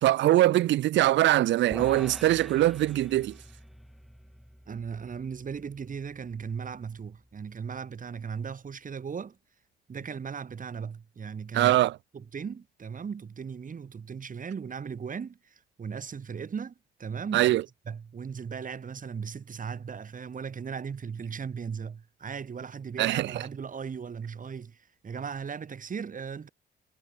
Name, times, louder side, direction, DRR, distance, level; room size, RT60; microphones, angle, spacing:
voice 1, 0.0-3.3 11.5-12.0 17.3-17.6 23.0-23.4, right 15 dB, 65° right, 0.5 m, -22 dB
sound 1, 1.7-8.1, equal, ahead, 1.1 m, -47 dB
voice 2, 4.7-9.4 9.9-11.8 12.1-16.7 17.0-17.5 17.9-26.5, right 6 dB, 40° right, 3.6 m, -37 dB
cardioid pair, 90°, 20 cm